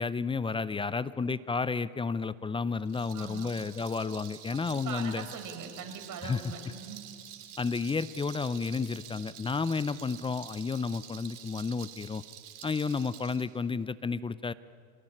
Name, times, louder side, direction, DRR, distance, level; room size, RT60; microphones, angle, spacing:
voice 1, 0.0-5.2 6.2-6.4 7.6-12.2 12.6-14.5, left 4 dB, 10° left, 17 dB, 0.6 m, -31 dB
Rattle, 2.8-13.4, right 10 dB, 85° right, 3.0 m, -48 dB
voice 2, 3.1-3.5 4.5-7.0, right 6 dB, 45° right, 6 dB, 5.1 m, -42 dB
26.5 x 19.0 x 9.9 m, 2.1 s
hypercardioid pair, 100°, 44 cm